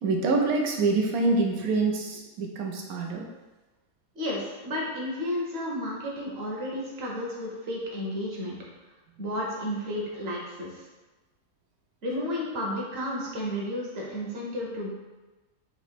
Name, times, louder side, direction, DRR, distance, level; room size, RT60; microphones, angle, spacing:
voice 1, 0.0-3.3, right 3 dB, 85° right, 1 dB, 1.2 m, -26 dB
voice 2, 4.1-8.6 9.2-10.8 12.0-14.9, left 1 dB, 50° right, -3 dB, 1.2 m, -32 dB
3.9 x 3.0 x 4.5 m, 1.2 s
omnidirectional pair, 1.5 m